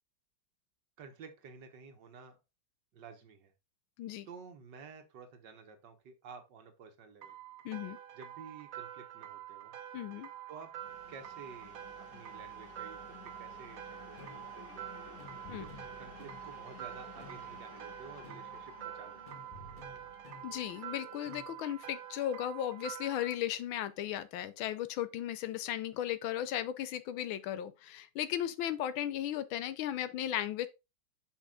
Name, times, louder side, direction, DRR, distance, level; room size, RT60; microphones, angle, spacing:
voice 1, 1.0-2.4 2.9-3.5 4.3-7.3 8.1-9.7 10.5-10.7 11.1-14.9 15.6-19.4, right 5 dB, 60° right, 1.7 m, -52 dB
sound 1, 7.2-23.4, right 12 dB, 80° right, 0.8 m, -47 dB
voice 2, 7.6-8.0 9.9-10.3 15.5-15.6 20.4-30.7, left 11 dB, 80° left, 1.4 m, -36 dB
sound 2, 10.8-22.4, left 3 dB, 50° left, 1.9 m, -55 dB
sound 3, 13.5-21.8, left 2 dB, 35° left, 0.9 m, -55 dB
5.9 x 5.5 x 3.7 m
omnidirectional pair, 2.3 m